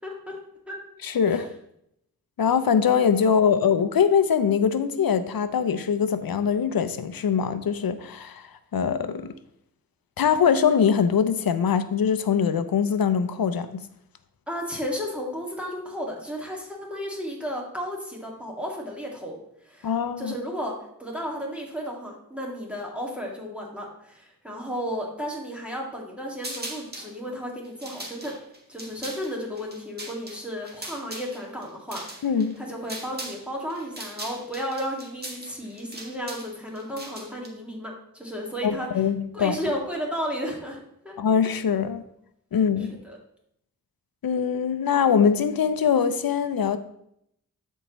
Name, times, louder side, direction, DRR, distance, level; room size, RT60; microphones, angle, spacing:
voice 1, 0.0-0.4 0.7-0.8 1.3-1.4 14.5-19.4 19.6-28.3 28.7-32.3 32.6-38.9 39.3-41.1 43.0-43.2, equal, 5° right, 2.0 m, -33 dB
voice 2, 1.0-1.5 2.4-9.3 10.2-13.8 19.8-20.3 32.2-32.5 38.6-39.6 41.2-42.0 42.5-42.9 44.2-46.8, left 7 dB, 75° left, 0.6 m, -22 dB
sound 1, 26.4-27.1 27.6-33.4 33.7-37.5, right 1 dB, 25° right, 1.6 m, -39 dB
13.0 x 4.5 x 3.0 m
wide cardioid pair, 70°, 36 cm